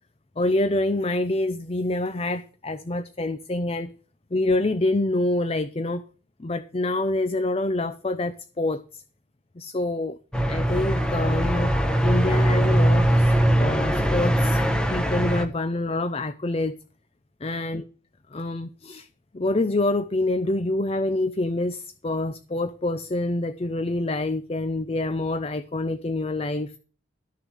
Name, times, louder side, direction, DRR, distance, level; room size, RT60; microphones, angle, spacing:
voice 1, 0.4-3.9 4.3-6.0 6.4-9.0 9.6-10.2 10.5-11.8 12.0-14.6 14.9-16.7 17.4-17.8 18.3-19.1 19.3-26.7, left 2 dB, 30° left, 0.5 m, -26 dB
sound 1, 10.3-15.4, right 1 dB, 5° left, 1.0 m, -21 dB
13.0 x 6.7 x 6.3 m
head